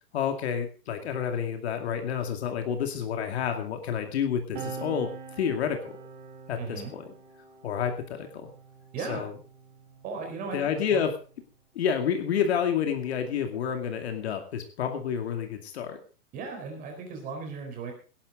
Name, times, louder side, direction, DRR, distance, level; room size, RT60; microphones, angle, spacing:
voice 1, 0.1-5.1 5.4-6.0 6.5-7.0 7.6-8.5 9.1-9.3 10.5-11.1 11.8-16.0, left 8 dB, 40° left, 5 dB, 2.4 m, -29 dB
sound 1, 4.5-11.5 12.4-14.3, right 5 dB, 35° right, 2.8 m, -45 dB
voice 2, 6.6-6.9 8.9-9.3 10.0-11.0 16.3-17.9, right 4 dB, 20° right, 4 dB, 4.2 m, -36 dB
18.0 x 11.5 x 3.8 m, 0.37 s
hypercardioid pair, 155°, 46 cm